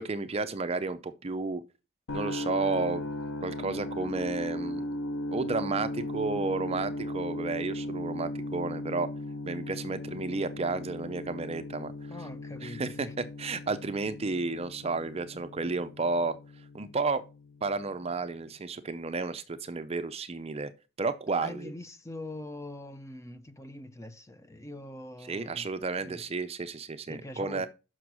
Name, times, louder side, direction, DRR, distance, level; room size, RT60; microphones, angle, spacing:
voice 1, 0.0-1.6 2.1-3.0 3.4-4.8 5.3-9.1 9.4-11.9 12.6-13.1 13.4-16.3 16.7-17.2 17.6-20.7 21.0-21.7 25.2-27.7, right 3 dB, 30° right, 0.5 m, -32 dB
sound 1, 2.1-18.0, left 1 dB, 85° left, 0.9 m, -37 dB
voice 2, 12.1-13.1 21.4-25.7 26.0-26.2 27.1-27.7, left 1 dB, 15° left, 0.6 m, -43 dB
6.5 x 6.0 x 6.0 m
head